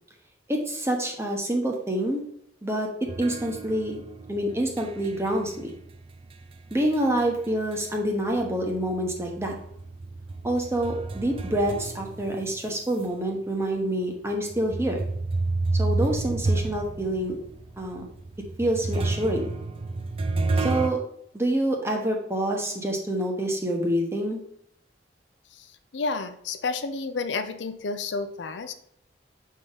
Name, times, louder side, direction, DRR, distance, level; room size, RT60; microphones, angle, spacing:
voice 1, 0.5-2.2 2.6-4.0 4.3-5.7 6.7-9.5 10.4-15.0 15.7-17.4 17.8-18.0 18.6-19.5 20.6-21.0 21.3-24.4, right 1 dB, 15° right, 1 dB, 1.0 m, -27 dB
sound 1, 3.1-8.1 8.4-13.0 13.6-13.7 14.5-20.9, right 3 dB, 30° right, 0.4 m, -30 dB
voice 2, 25.9-28.7, left 4 dB, 80° left, 9 dB, 0.6 m, -30 dB
6.7 x 3.7 x 3.9 m, 0.71 s
head